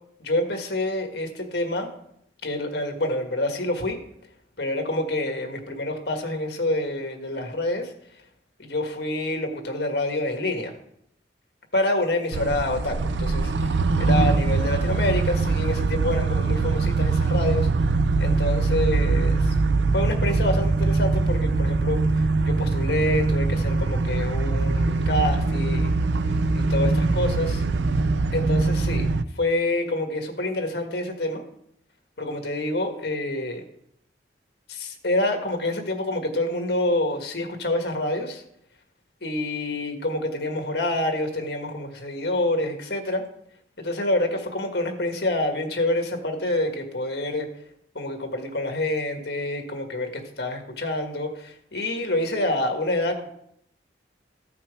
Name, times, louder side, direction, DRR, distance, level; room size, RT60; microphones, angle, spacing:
voice 1, 0.2-1.9 2.4-4.0 4.6-7.9 8.6-10.8 11.7-17.7 18.2-19.5 19.9-25.9 26.5-27.6 28.3-29.1 29.3-31.4 32.2-33.6 34.7-38.4 39.2-43.2 43.8-47.5 47.9-53.3, left 1 dB, 60° left, 4 dB, 1.6 m, -27 dB
sound 1, 12.3-29.2, right 3 dB, 75° right, 0.5 m, -22 dB
14.5 x 6.0 x 4.8 m, 0.73 s
head